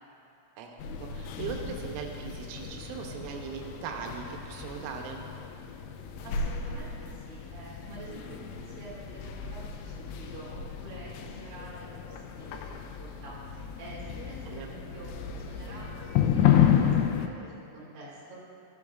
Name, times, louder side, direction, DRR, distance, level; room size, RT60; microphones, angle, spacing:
voice 1, 0.6-5.2 14.5-14.7, right 6 dB, 85° right, 2 dB, 3.4 m, -39 dB
sound 1, 0.8-17.3, left 9 dB, 85° left, 3.2 m, -31 dB
voice 2, 6.2-18.3, right 2 dB, 40° right, -8 dB, 2.4 m, -47 dB
15.5 x 7.8 x 2.4 m, 2.7 s
omnidirectional pair, 5.8 m